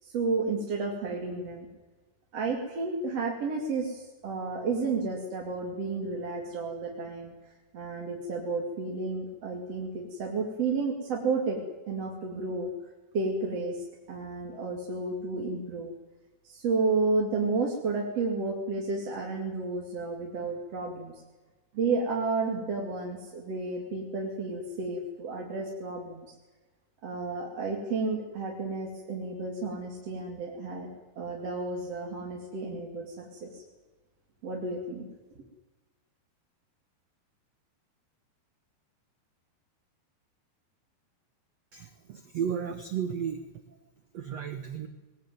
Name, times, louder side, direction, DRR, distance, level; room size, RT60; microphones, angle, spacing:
voice 1, 0.0-1.7 2.3-7.3 7.7-11.6 11.9-12.7 13.1-15.9 16.4-21.1 21.7-26.3 27.0-30.9 31.2-33.6 34.4-35.0 35.3-35.4, right 3 dB, 40° right, 0 dB, 3.3 m, -32 dB
voice 2, 41.7-43.5 44.1-44.9, right 8 dB, 80° right, 9 dB, 1.4 m, -33 dB
21.0 x 20.0 x 9.4 m, 1.2 s
omnidirectional pair, 5.0 m